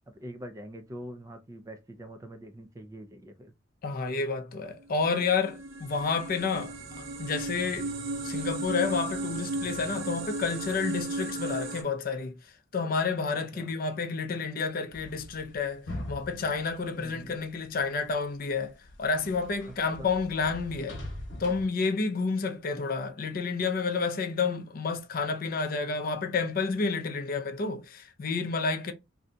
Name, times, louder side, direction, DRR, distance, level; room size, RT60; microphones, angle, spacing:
voice 1, 0.2-3.3 17.2-17.3 19.9-20.0, equal, 15° right, 0.3 m, -43 dB
voice 2, 3.8-7.9 8.2-12.3 12.7-21.0 21.4-28.9, left 4 dB, 45° left, 0.4 m, -30 dB
sound 1, 5.0-11.8, right 2 dB, 75° right, 0.7 m, -35 dB
sound 2, 14.9-17.9 18.3-21.7, left 1 dB, 65° left, 1.0 m, -42 dB
2.6 x 2.2 x 3.7 m
head